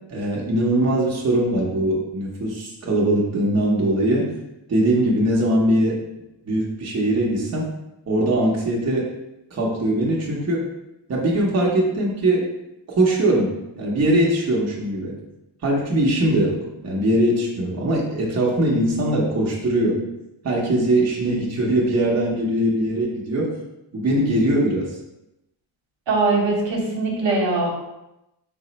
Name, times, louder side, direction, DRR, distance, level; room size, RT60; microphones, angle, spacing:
voice 1, 0.1-4.3 4.7-6.0 6.5-7.7 8.1-9.1 9.5-10.6 11.1-12.5 12.9-15.1 15.6-20.0 20.4-23.5 23.9-24.9, right 1 dB, 35° right, -3 dB, 0.8 m, -21 dB
voice 2, 26.1-27.7, right 3 dB, 65° right, -2 dB, 1.0 m, -21 dB
3.5 x 2.0 x 4.0 m, 0.92 s
cardioid pair, 90°, 47 cm